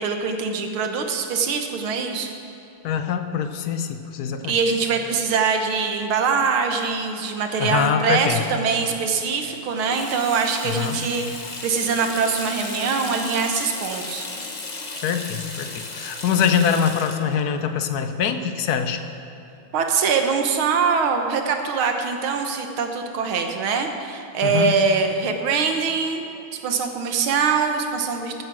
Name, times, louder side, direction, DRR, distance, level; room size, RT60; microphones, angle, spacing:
voice 1, 0.0-2.3 4.5-14.3 19.7-26.2 26.6-28.4, right 5 dB, 75° right, 5 dB, 1.9 m, -23 dB
voice 2, 2.8-4.5 7.6-8.4 10.6-11.0 15.0-19.0 24.4-24.8, left 7 dB, 65° left, 8 dB, 1.0 m, -24 dB
Water tap faucet / Sink (filling or washing), 9.7-19.0, left 3 dB, 40° left, 0.6 m, -35 dB
15.0 x 8.6 x 6.2 m, 2.8 s
omnidirectional pair, 2.3 m